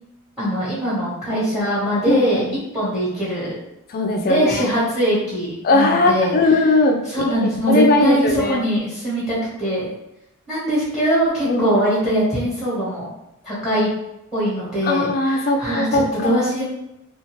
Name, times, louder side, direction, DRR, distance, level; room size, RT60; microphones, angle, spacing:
voice 1, 0.4-2.4 2.7-3.6 4.3-6.3 7.1-9.9 10.5-13.1 13.4-13.9 14.3-16.6, equal, 5° right, -8 dB, 1.1 m, -22 dB
voice 2, 2.1-2.6 3.9-4.7 5.6-8.6 11.4-11.7 14.8-16.5, left 2 dB, 40° left, 4 dB, 0.3 m, -19 dB
2.5 x 2.4 x 3.0 m, 0.86 s
head